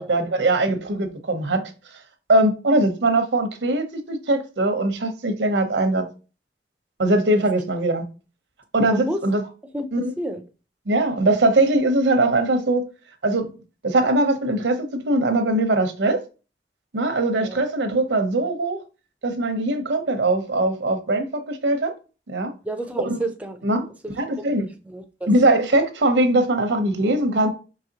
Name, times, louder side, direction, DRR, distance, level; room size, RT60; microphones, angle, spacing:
voice 1, 0.0-1.6 2.3-6.0 7.0-8.0 8.7-9.4 9.9-10.1 10.9-12.8 13.2-13.5 13.8-16.2 16.9-18.8 19.2-21.9 22.3-22.5 23.0-23.2 23.6-23.8 24.2-24.7 25.3-27.5, right 2 dB, 85° right, 0.8 m, -21 dB
voice 2, 8.9-9.2 9.7-10.4 17.4-17.6 22.6-23.6 24.6-25.3, right 1 dB, 10° right, 0.4 m, -31 dB
4.8 x 3.0 x 2.8 m
head